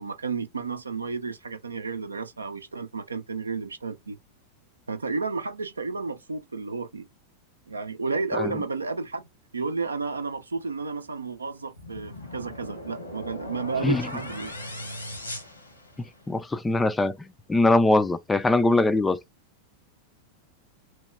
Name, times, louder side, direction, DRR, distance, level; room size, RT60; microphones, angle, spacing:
voice 1, 0.0-4.2 4.9-7.1 7.7-9.3 9.5-14.5, right 4 dB, 75° right, 0.5 m, -32 dB
sound 1, 11.8-16.4, left 1 dB, 80° left, 1.1 m, -39 dB
voice 2, 16.3-19.2, left 2 dB, 10° left, 0.3 m, -22 dB
3.0 x 2.2 x 3.3 m
figure-of-eight pair, 90°, 0 cm